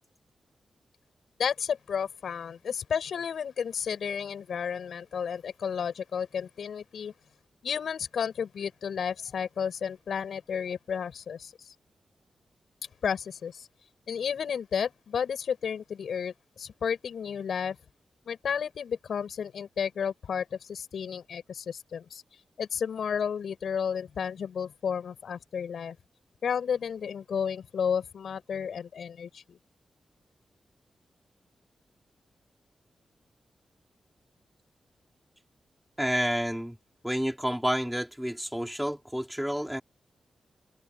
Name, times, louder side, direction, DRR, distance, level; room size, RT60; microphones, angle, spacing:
voice 1, 1.4-7.1 7.6-11.7 13.0-13.7 14.1-17.8 18.3-22.2 22.6-26.0 26.4-29.6, left 7 dB, 75° left, 7.3 m, -32 dB
voice 2, 36.0-36.8 37.0-39.8, equal, ahead, 3.8 m, -29 dB
wide cardioid pair, 155°, 0 cm